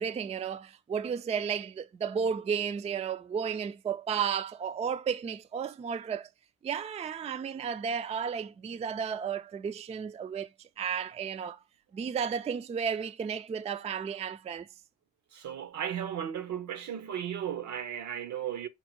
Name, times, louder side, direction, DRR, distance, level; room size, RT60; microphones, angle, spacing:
voice 1, 0.0-6.3 6.6-10.5 10.8-11.6 11.9-14.7, right 7 dB, 20° right, 0.3 m, -33 dB
voice 2, 15.3-18.7, right 9 dB, 70° right, 0.7 m, -35 dB
5.3 x 2.1 x 4.4 m
cardioid pair, 90°, 30 cm